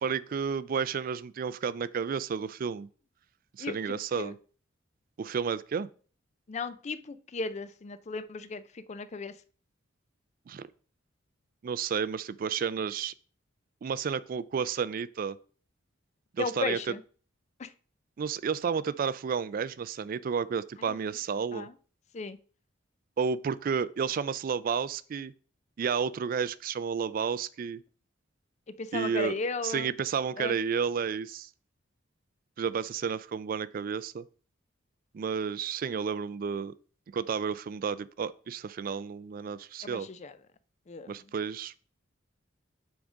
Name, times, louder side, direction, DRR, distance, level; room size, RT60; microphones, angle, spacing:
voice 1, 0.0-2.9 3.6-4.3 5.2-5.9 10.5-10.7 11.6-13.1 13.8-15.4 16.3-17.0 18.2-21.7 23.2-25.3 25.8-27.8 28.9-29.3 29.6-31.5 32.6-34.2 35.1-36.7 37.1-40.1 41.1-41.7, right 6 dB, 45° right, 0.3 m, -31 dB
voice 2, 3.6-4.3 6.5-9.3 16.4-17.0 17.6-17.7 20.8-21.0 21.5-21.7 22.1-22.4 28.8-29.9 30.4-30.6 39.8-40.3 40.9-41.1, left 4 dB, 35° left, 0.4 m, -36 dB
6.2 x 3.5 x 5.0 m
head